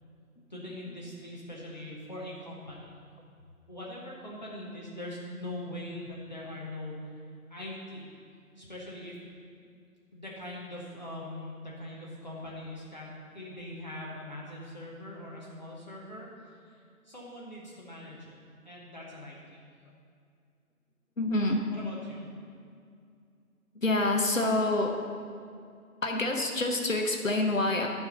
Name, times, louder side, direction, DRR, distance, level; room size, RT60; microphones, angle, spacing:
voice 1, 0.5-2.9 3.7-7.1 7.5-8.1 8.6-9.1 10.1-16.8 17.0-18.4 18.6-19.6 21.7-22.3, left 1 dB, 30° left, -6 dB, 1.0 m, -42 dB
voice 2, 21.2-21.7 23.8-25.0 26.0-27.9, left 2 dB, 55° left, 2 dB, 1.0 m, -27 dB
9.7 x 4.6 x 6.8 m, 2.4 s
figure-of-eight pair, 155°, 45 cm